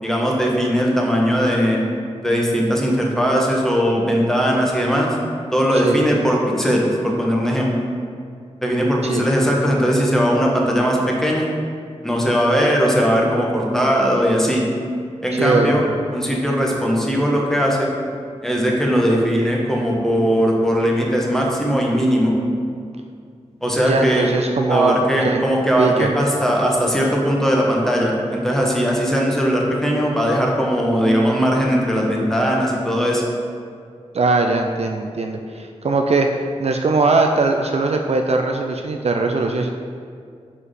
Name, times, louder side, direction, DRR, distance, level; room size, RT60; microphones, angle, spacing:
voice 1, 0.0-1.8 2.2-5.2 5.5-7.7 8.6-11.5 12.0-14.6 15.2-15.8 16.1-17.9 18.4-22.3 23.6-24.3 24.7-33.3, equal, 5° left, -2 dB, 1.2 m, -19 dB
voice 2, 15.3-15.8 23.8-25.4 25.8-26.1 34.1-36.3 36.6-39.7, right 3 dB, 60° right, 3 dB, 0.4 m, -20 dB
4.8 x 4.2 x 4.9 m, 2.2 s
cardioid pair, 45°, 12 cm